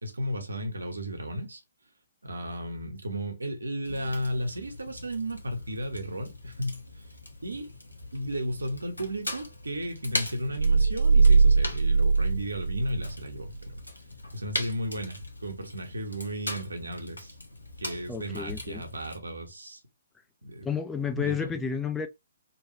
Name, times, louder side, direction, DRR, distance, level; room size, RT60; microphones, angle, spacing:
voice 1, 0.0-1.6 2.2-6.8 7.4-7.7 8.1-13.5 14.3-17.3 17.8-19.8 20.4-20.7 21.1-21.5, equal, 75° right, 0.9 m, -34 dB
Fire, 3.8-19.2, left 1 dB, 80° left, 0.8 m, -40 dB
sound 1, 10.6-13.1 13.5-13.6, right 4 dB, 50° right, 0.5 m, -21 dB
voice 2, 18.1-18.8 20.6-22.1, left 6 dB, 10° left, 0.3 m, -31 dB
2.9 x 2.3 x 2.9 m
figure-of-eight pair, 125°, 0 cm